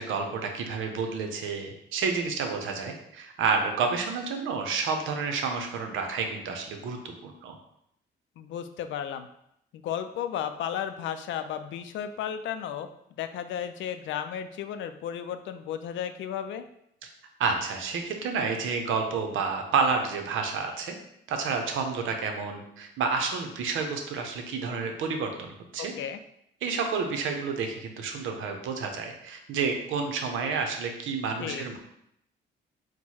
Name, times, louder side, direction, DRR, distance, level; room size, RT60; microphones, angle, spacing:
voice 1, 0.0-7.6 17.4-20.9 21.3-25.9 26.6-31.8, right 5 dB, 80° right, 4 dB, 0.7 m, -30 dB
voice 2, 8.4-9.3 9.7-12.9 13.2-16.6 25.8-26.2 31.4-31.7, left 9 dB, 75° left, 9 dB, 0.4 m, -34 dB
4.5 x 2.2 x 4.2 m, 0.76 s
cardioid pair, 90°, 20 cm